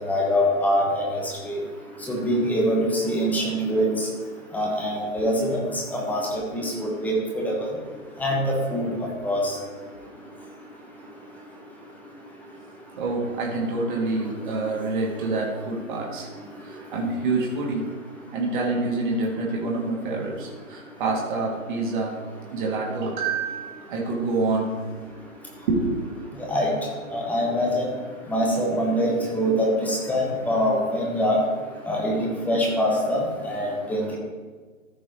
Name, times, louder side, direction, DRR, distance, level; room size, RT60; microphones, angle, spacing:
voice 1, 0.1-1.0 1.5-1.6 2.1-3.9 4.5-5.6 5.9-6.2 6.5-7.7 8.2-8.4 8.7-8.9 9.2-9.4 26.5-26.7 27.1-27.9 28.3-31.4 31.9-34.2, equal, 5° left, -2 dB, 1.1 m, -24 dB
voice 2, 13.0-16.3 16.6-17.8 18.3-22.1 22.5-24.7 25.7-25.9, right 3 dB, 35° right, -2 dB, 2.0 m, -27 dB
14.5 x 6.1 x 3.0 m, 1.5 s
figure-of-eight pair, 130°, 42 cm